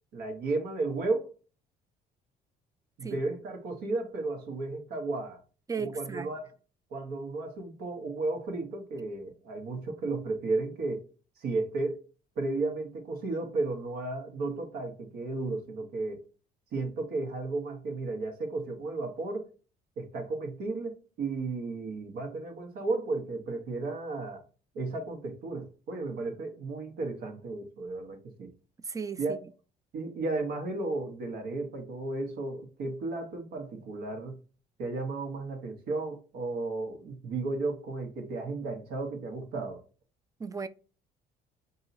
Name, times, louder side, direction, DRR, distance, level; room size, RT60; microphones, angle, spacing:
voice 1, 0.1-1.3 3.0-5.4 5.8-6.5 6.9-11.0 11.4-12.0 12.4-16.2 16.7-19.5 20.0-24.4 24.7-28.5 29.2-29.4 29.9-34.4 34.8-39.8, right 3 dB, 75° right, 1.3 m, -34 dB
voice 2, 5.7-6.3 28.9-29.4 40.4-40.7, right 5 dB, 20° right, 0.4 m, -35 dB
5.5 x 2.7 x 2.6 m
cardioid pair, 110°, 17 cm